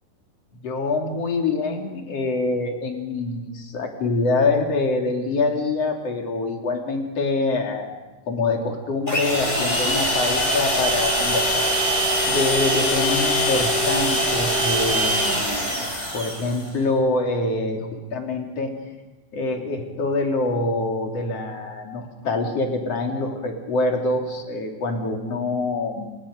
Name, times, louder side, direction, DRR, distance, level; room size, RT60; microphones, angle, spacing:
voice 1, 0.5-11.7 12.2-15.4 15.8-18.7 19.3-26.3, left 3 dB, 40° left, 2 dB, 3.5 m, -25 dB
sound 1, 9.1-16.7, equal, 10° left, 6.4 m, -22 dB
30.0 x 25.5 x 5.2 m, 1.1 s
omnidirectional pair, 5.0 m